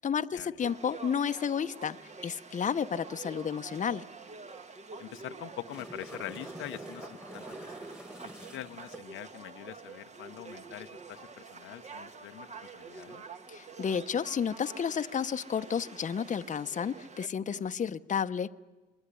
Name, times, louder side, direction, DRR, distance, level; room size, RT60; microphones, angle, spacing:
voice 1, 0.0-4.0 13.5-18.5, left 7 dB, 40° left, 10 dB, 0.9 m, -32 dB
Conversation / Crowd, 0.6-17.3, right 4 dB, 35° right, 1.4 m, -47 dB
voice 2, 5.0-7.4 7.8-7.9 8.3-13.2, left 13 dB, 90° left, 8 dB, 0.9 m, -44 dB
sound 1, 5.6-9.0 12.9-13.0, right 1 dB, 5° right, 1.9 m, -46 dB
25.5 x 21.0 x 10.0 m, 1.2 s
cardioid pair, 90°, 20 cm